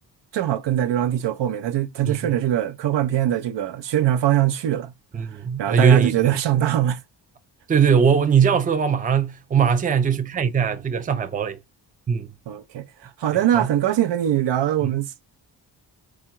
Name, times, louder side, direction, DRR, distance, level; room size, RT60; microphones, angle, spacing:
voice 1, 0.3-4.9 5.6-7.0 12.5-15.2, right 11 dB, 70° right, 0.6 m, -22 dB
voice 2, 5.1-6.1 7.7-11.6 12.1-12.3 13.5-13.7 14.8-14.9, right 6 dB, 20° right, 0.4 m, -20 dB
3.7 x 2.4 x 4.3 m
cardioid pair, 100°, 44 cm